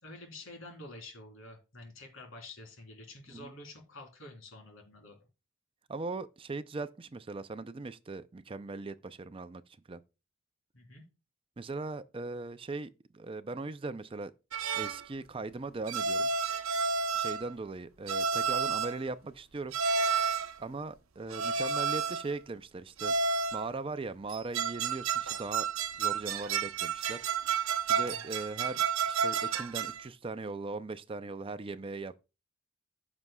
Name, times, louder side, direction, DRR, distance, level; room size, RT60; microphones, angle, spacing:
voice 1, 0.0-5.2 10.7-11.0 28.0-28.3, left 2 dB, 75° left, 3.4 m, -49 dB
voice 2, 5.9-9.6 9.9-10.0 11.6-14.3 14.7-16.3 17.1-19.8 20.6-23.1 23.5-25.7 26.0-27.3 27.9-28.8 29.1-32.2, right 3 dB, 25° right, 0.4 m, -39 dB
sound 1, 14.5-15.0 15.9-17.5 18.1-19.0 19.7-20.6 21.3-22.3 23.0-23.7 24.3-30.0, right 5 dB, 85° right, 0.8 m, -31 dB
15.0 x 6.1 x 2.3 m
head